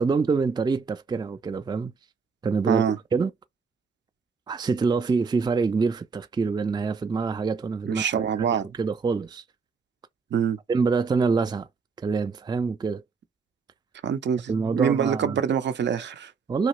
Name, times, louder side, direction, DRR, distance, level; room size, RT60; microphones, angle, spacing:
voice 1, 0.0-1.9 2.4-2.8 3.1-3.3 4.5-9.4 10.7-11.7 12.0-13.0 14.5-15.4 16.5-16.7, right 4 dB, 20° right, 0.4 m, -25 dB
voice 2, 2.7-3.0 7.9-8.7 10.3-10.6 14.0-16.3, right 8 dB, 65° right, 0.6 m, -25 dB
2.8 x 2.3 x 3.0 m
cardioid pair, 55°, 20 cm